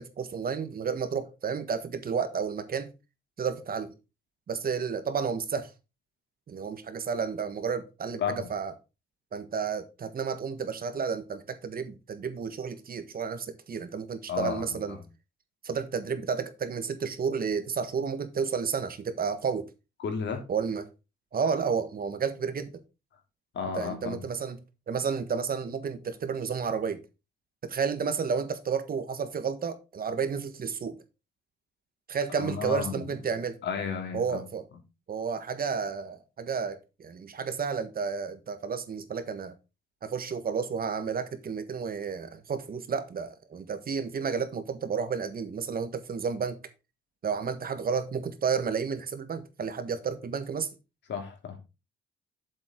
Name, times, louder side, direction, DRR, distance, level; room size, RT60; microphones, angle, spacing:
voice 1, 0.0-2.9 3.4-3.9 4.5-5.7 6.5-8.7 9.3-15.0 15.6-19.7 20.5-20.9 21.3-22.7 23.7-24.6 24.9-27.0 27.6-31.0 32.1-33.6 34.1-34.7 35.1-39.5 40.0-46.6 47.2-50.7, right 6 dB, 45° right, 1.5 m, -31 dB
voice 2, 14.3-15.0 20.0-20.4 23.5-24.2 32.4-33.2 33.6-34.4 51.1-51.6, left 6 dB, 65° left, 3.0 m, -33 dB
7.8 x 7.4 x 3.8 m
cardioid pair, 90°, 20 cm